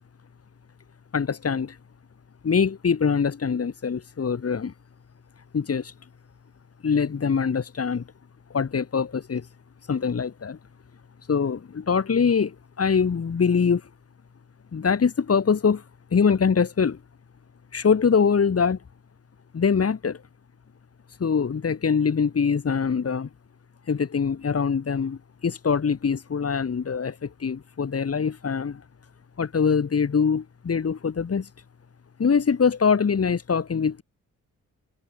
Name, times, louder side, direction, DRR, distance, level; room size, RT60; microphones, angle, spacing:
voice 1, 1.1-1.8 2.4-4.7 5.5-5.9 6.8-8.0 8.5-9.5 9.9-10.6 11.3-13.8 14.7-15.8 16.1-17.0 17.7-18.8 19.5-20.2 21.2-23.3 23.9-28.8 29.4-31.5 32.2-34.0, left 6 dB, 45° left, 7.5 m, -23 dB
cardioid pair, 105°, 33 cm